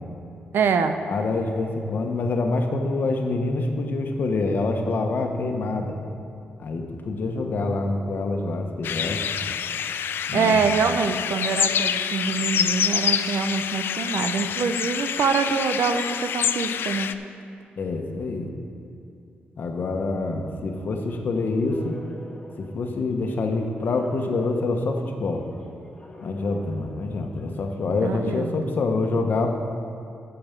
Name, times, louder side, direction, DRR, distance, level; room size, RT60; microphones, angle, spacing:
voice 1, 0.5-1.0 10.3-17.1 28.0-28.5, right 5 dB, 75° right, 8 dB, 0.6 m, -25 dB
voice 2, 1.1-5.9 6.6-9.2 10.3-10.8 17.8-18.5 19.6-22.0 22.6-25.4 26.2-29.5, left 3 dB, 60° left, 3 dB, 1.2 m, -26 dB
sound 1, 8.8-17.1, left 8 dB, 75° left, 0.4 m, -27 dB
sound 2, 21.0-27.8, equal, 20° left, 1.7 m, -48 dB
8.7 x 7.0 x 7.2 m, 2.6 s
cardioid pair, 105°, 4 cm